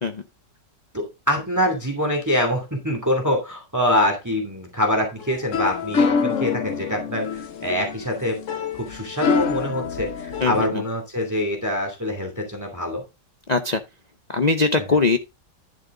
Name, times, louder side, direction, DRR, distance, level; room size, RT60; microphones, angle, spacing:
voice 1, 0.9-8.4 8.7-13.0, left 1 dB, 10° right, 2.5 m, -24 dB
sound 1, 5.2-10.7, left 5 dB, 55° left, 1.1 m, -26 dB
voice 2, 13.5-13.8 14.3-15.2, left 3 dB, 75° left, 0.3 m, -21 dB
11.0 x 6.5 x 3.8 m
omnidirectional pair, 1.9 m